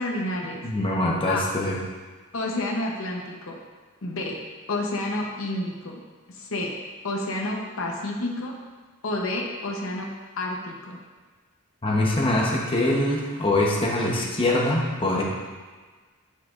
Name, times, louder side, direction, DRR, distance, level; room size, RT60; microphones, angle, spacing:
voice 1, 0.0-0.7 1.3-1.4 2.3-3.6 4.0-4.4 4.7-6.0 6.3-6.7 7.0-8.5 9.0-10.1 10.4-11.0, left 2 dB, 65° left, 0 dB, 0.9 m, -29 dB
voice 2, 0.6-1.8 11.8-15.2, left 1 dB, 25° left, -3 dB, 0.9 m, -23 dB
9.2 x 5.8 x 2.5 m, 1.4 s
head